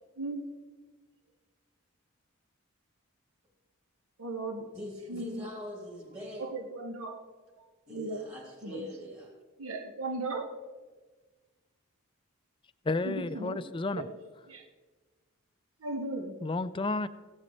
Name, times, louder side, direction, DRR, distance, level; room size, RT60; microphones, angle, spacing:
voice 1, 4.2-4.7 5.1-5.4 6.4-7.2 7.9-8.2 8.6-8.8 9.6-10.5 13.0-13.6 13.9-14.1 14.5-14.7 15.8-16.4, right 2 dB, 85° right, 1.4 m, -36 dB
voice 2, 4.7-6.4 7.9-9.3, left 1 dB, 30° right, 3.2 m, -42 dB
voice 3, 12.8-14.1 16.4-17.1, left 3 dB, 25° left, 0.4 m, -31 dB
16.0 x 12.0 x 3.2 m
head